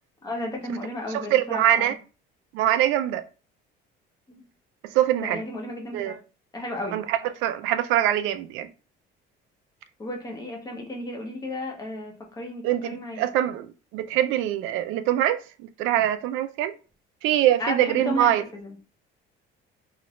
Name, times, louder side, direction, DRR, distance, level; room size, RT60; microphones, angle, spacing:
voice 1, 0.2-1.9 4.3-4.4 5.2-6.2 6.5-7.0 10.0-13.3 17.6-18.7, left 1 dB, 20° left, 0.7 m, -33 dB
voice 2, 1.1-2.0 2.5-3.2 4.9-5.4 5.9-6.2 6.9-8.7 12.6-16.7 17.2-18.4, right 12 dB, 80° right, 0.4 m, -24 dB
3.1 x 2.4 x 3.0 m
cardioid pair, 160°, 20 cm